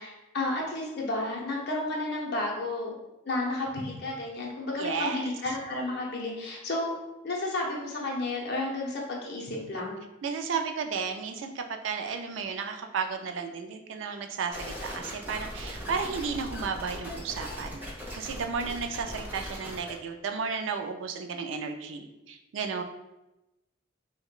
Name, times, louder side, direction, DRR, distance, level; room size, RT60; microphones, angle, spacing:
voice 1, 0.0-3.0 3.2-6.9 7.2-9.9, left 2 dB, 55° left, -2 dB, 0.7 m, -32 dB
voice 2, 4.8-5.2 10.2-22.8, right 5 dB, 70° right, 5 dB, 0.4 m, -33 dB
sound 1, 14.5-19.9, equal, 10° right, 0.6 m, -39 dB
4.8 x 2.1 x 2.4 m, 0.97 s
head